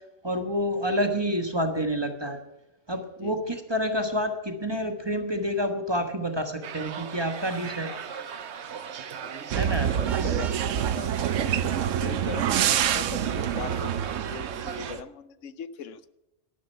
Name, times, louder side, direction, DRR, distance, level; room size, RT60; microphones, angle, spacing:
voice 1, 0.2-2.4 2.9-8.2 9.5-9.9, equal, 20° right, 6 dB, 1.3 m, -28 dB
voice 2, 3.2-3.6 7.8-8.0 9.2-9.5 10.0-10.5 10.7-11.6 12.0-16.1, left 7 dB, 80° left, 14 dB, 1.1 m, -41 dB
sound 1, 6.6-15.0, right 7 dB, 65° right, 1.1 m, -38 dB
sound 2, 9.5-15.0, right 9 dB, 85° right, 1.1 m, -26 dB
Vehicle horn car horn honking, 10.0-10.7, right 7 dB, 45° right, 0.8 m, -41 dB
12.5 x 12.5 x 5.6 m, 0.96 s
omnidirectional pair, 1.3 m